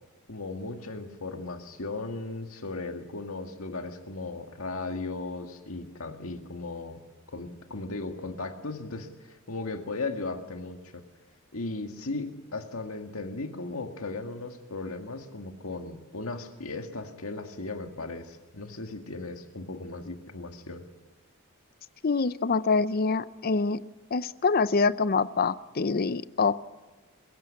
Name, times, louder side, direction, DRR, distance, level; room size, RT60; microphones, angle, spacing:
voice 1, 0.3-7.0 7.3-11.0 11.5-20.9, left 3 dB, 75° left, 5 dB, 1.9 m, -37 dB
voice 2, 22.0-23.8 24.1-26.6, left 4 dB, 45° left, 16 dB, 0.6 m, -25 dB
21.5 x 16.5 x 8.6 m, 1.2 s
head